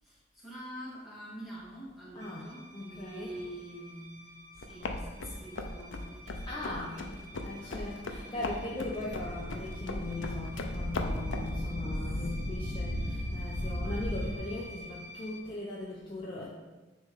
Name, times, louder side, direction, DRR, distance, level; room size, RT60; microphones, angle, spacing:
voice 1, 0.0-7.9 8.3-8.5 12.3-12.7, right 1 dB, ahead, -8 dB, 1.9 m, -46 dB
voice 2, 2.1-3.4 6.4-7.0 7.4-16.5, left 2 dB, 25° left, -5 dB, 0.7 m, -39 dB
sound 1, 2.2-15.4, left 1 dB, 30° right, 0.9 m, -50 dB
sound 2, 4.6-11.6, left 2 dB, 70° left, 0.5 m, -39 dB
sound 3, 9.0-14.4, equal, 40° left, 1.0 m, -35 dB
9.5 x 3.2 x 3.7 m, 1.2 s
head